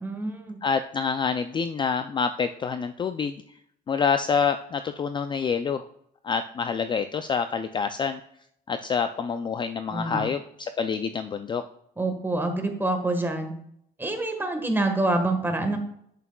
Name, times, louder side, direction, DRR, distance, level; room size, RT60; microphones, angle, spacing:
voice 1, 0.0-0.6 9.9-10.2 12.0-13.5 14.0-15.8, right 2 dB, 10° right, 4 dB, 1.4 m, -26 dB
voice 2, 0.6-3.4 3.9-5.9 6.2-8.2 8.7-11.6, left 6 dB, 30° left, 10 dB, 0.3 m, -27 dB
8.2 x 7.2 x 2.3 m, 0.69 s
cardioid pair, 110°, 17 cm